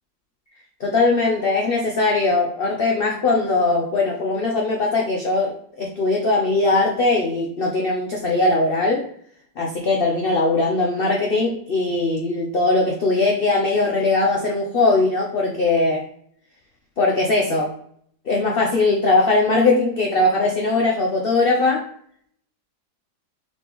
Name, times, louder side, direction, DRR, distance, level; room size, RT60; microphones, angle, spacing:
voice 1, 0.8-9.1 9.6-16.0 17.0-17.7 18.3-21.8, left 3 dB, 90° left, -1 dB, 0.5 m, -20 dB
4.2 x 3.1 x 3.4 m, 0.65 s
omnidirectional pair, 1.8 m